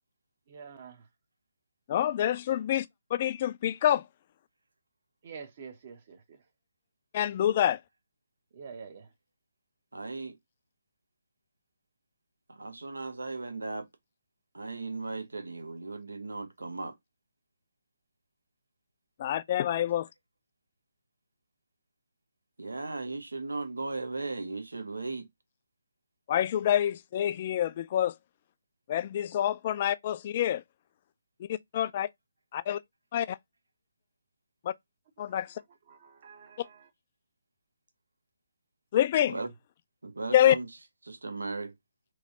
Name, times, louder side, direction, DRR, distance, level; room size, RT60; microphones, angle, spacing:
voice 1, 0.5-1.0 5.2-6.4 8.5-9.1 35.2-35.4 35.9-36.9, right 6 dB, 40° right, 0.9 m, -47 dB
voice 2, 1.9-2.9 3.1-4.0 7.1-7.8 19.2-20.1 26.3-28.1 28.9-30.6 31.4-32.1 32.5-32.8 33.1-33.4 34.6-34.7 35.2-35.6 38.9-39.4 40.3-40.6, left 11 dB, 35° left, 0.3 m, -27 dB
voice 3, 9.9-10.4 12.5-13.9 14.5-16.9 22.6-25.3 39.3-39.5 40.0-40.7 41.0-41.7, right 3 dB, 75° right, 0.7 m, -36 dB
3.1 x 2.8 x 3.7 m
figure-of-eight pair, 145°, 0 cm